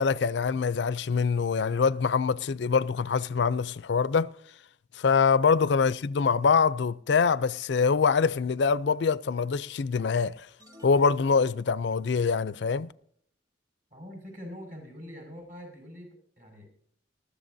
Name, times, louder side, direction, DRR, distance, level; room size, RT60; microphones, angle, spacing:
voice 1, 0.0-4.3 4.9-10.5 10.8-12.9, left 5 dB, 65° left, 0.4 m, -24 dB
sound 1, 10.6-12.1, equal, 20° right, 1.2 m, -54 dB
voice 2, 13.9-16.7, equal, 45° right, 5.7 m, -44 dB
20.0 x 14.0 x 2.7 m
head